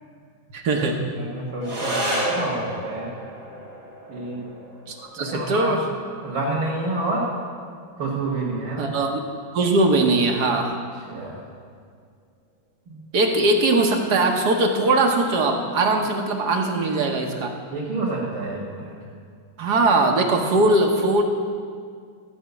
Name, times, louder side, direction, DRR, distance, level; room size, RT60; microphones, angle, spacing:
voice 1, 0.5-1.0 4.9-5.8 8.8-9.2 9.5-10.8 13.1-17.5 19.6-21.2, right 2 dB, 60° right, 2 dB, 1.5 m, -20 dB
voice 2, 1.1-3.1 4.1-4.4 5.2-5.7 6.2-7.3 8.0-8.9 11.1-11.4 12.9-13.0 17.7-18.9, right 2 dB, 85° right, -6 dB, 2.7 m, -28 dB
sound 1, 1.6-10.6, equal, 40° right, 4.3 m, -33 dB
14.5 x 5.0 x 8.3 m, 2.1 s
omnidirectional pair, 2.2 m